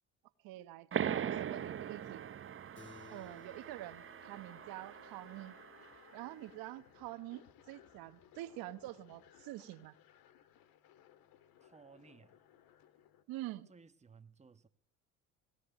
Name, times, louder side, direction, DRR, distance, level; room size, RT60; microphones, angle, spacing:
voice 1, 0.4-2.2 3.1-5.6 6.1-9.9 13.3-13.7, right 16 dB, 75° right, 1.3 m, -46 dB
sound 1, 0.9-6.1, right 9 dB, 35° right, 0.9 m, -41 dB
sound 2, 2.7-13.2, left 10 dB, 70° left, 2.1 m, -63 dB
Keyboard (musical), 2.8-7.6, left 5 dB, 35° left, 5.5 m, -61 dB
voice 2, 11.6-12.4 13.7-14.7, right 5 dB, 20° right, 1.2 m, -59 dB
21.0 x 16.0 x 9.3 m
supercardioid pair, 85°, 36 cm